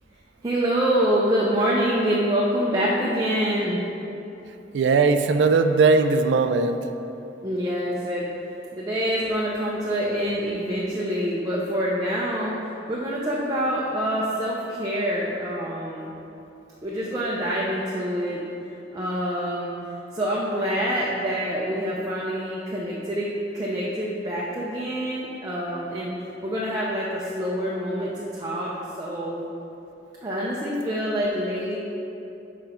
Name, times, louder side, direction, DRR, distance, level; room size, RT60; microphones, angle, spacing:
voice 1, 0.4-3.8 7.4-8.3 8.7-16.2 16.8-18.4 18.9-19.7 20.1-28.7 29.0-29.4 30.2-31.8, equal, 20° right, -6 dB, 0.6 m, -26 dB
voice 2, 4.7-6.8, right 4 dB, 75° right, 8 dB, 0.3 m, -19 dB
6.0 x 5.1 x 4.3 m, 2.8 s
head